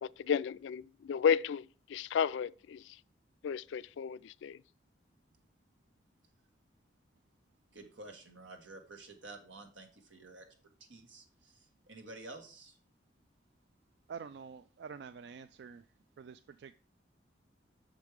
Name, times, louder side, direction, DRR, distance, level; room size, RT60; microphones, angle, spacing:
voice 1, 0.0-3.0 3.4-4.6, left 7 dB, 75° left, 0.3 m, -33 dB
voice 2, 7.7-10.5 10.8-12.8, right 2 dB, 85° right, 1.6 m, -51 dB
voice 3, 14.1-15.9 16.2-16.7, right 6 dB, 65° right, 0.3 m, -47 dB
6.4 x 5.2 x 4.7 m
head